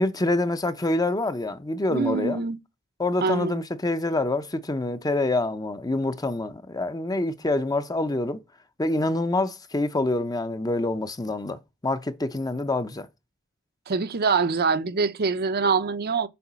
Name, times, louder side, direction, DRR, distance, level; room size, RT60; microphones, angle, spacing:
voice 1, 0.0-2.4 3.0-8.4 8.8-13.1, left 2 dB, 20° left, 0.7 m, -26 dB
voice 2, 1.9-2.6 3.2-3.6 13.9-16.3, right 4 dB, 50° right, 0.7 m, -24 dB
6.9 x 4.8 x 6.1 m
head